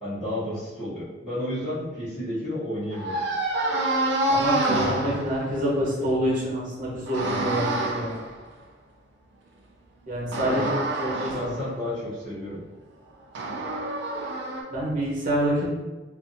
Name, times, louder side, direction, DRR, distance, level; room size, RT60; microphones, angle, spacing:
voice 1, 0.0-3.2 10.4-10.8 11.1-12.6, left 1 dB, 30° left, -12 dB, 0.9 m, -31 dB
sound 1, 2.9-5.5 7.0-8.4 10.3-11.7 13.3-14.6, right 2 dB, 65° right, 0.5 m, -27 dB
voice 2, 4.3-8.2 10.1-11.5 14.7-15.7, equal, 45° right, -5 dB, 1.0 m, -27 dB
2.6 x 2.5 x 2.6 m, 1.2 s
head